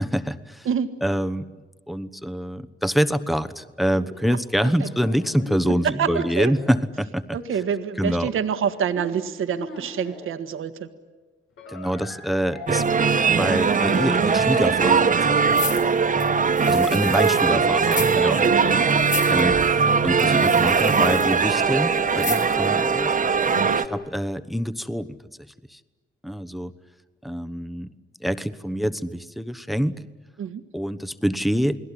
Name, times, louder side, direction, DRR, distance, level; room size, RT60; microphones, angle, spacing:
voice 1, 0.0-0.7 1.0-7.4 8.0-8.3 11.7-12.8 13.4-15.6 16.7-18.8 19.3-19.6 20.0-23.1 23.5-25.1 25.7-25.8 26.2-26.7 27.2-27.9 28.2-29.9 30.7-31.8, equal, ahead, 13 dB, 1.1 m, -26 dB
sound 1, 3.9-6.8 7.4-10.3 11.6-13.2 13.7-14.2 14.5-15.1 15.4-15.8 16.2-16.7 17.0-17.5 17.9-18.4, left 2 dB, 85° left, 7.9 m, -39 dB
voice 2, 6.0-6.5 7.3-10.9 18.1-18.9 23.5-23.8 30.4-30.6, right 7 dB, 75° right, 9 dB, 1.6 m, -27 dB
sound 2, 12.7-23.9, right 5 dB, 40° right, 1.4 m, -20 dB
sound 3, 15.5-17.5 17.8-18.2 18.4-18.5 19.0-19.4 20.2-21.3 22.2-22.7 23.1-23.2, left 4 dB, 35° left, 4.1 m, -33 dB
29.5 x 20.5 x 10.0 m, 1.3 s
cardioid pair, 100°, 21 cm